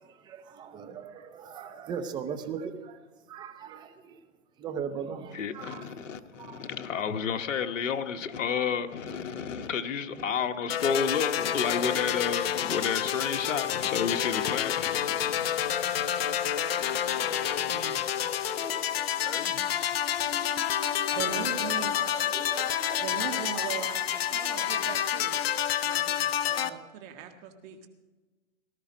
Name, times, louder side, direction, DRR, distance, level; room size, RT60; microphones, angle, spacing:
voice 1, 0.0-3.0 3.3-4.2 4.6-6.7 9.1-9.2 10.4-10.5 11.8-12.1 12.6-12.8 13.4-14.2 15.4-16.3 16.7-18.2 18.5-19.7 20.2-25.1, right 7 dB, 10° right, 0.7 m, -42 dB
voice 2, 5.3-16.4 16.6-16.8 17.2-17.3 19.2-19.6, left 6 dB, 70° left, 1.3 m, -32 dB
sound 1, 10.7-26.7, left 10 dB, 50° left, 0.8 m, -29 dB
voice 3, 17.4-18.0 21.1-21.9 23.0-25.4 25.8-27.9, right 7 dB, 30° right, 1.8 m, -39 dB
18.0 x 12.5 x 5.1 m
hypercardioid pair, 140°, 39 cm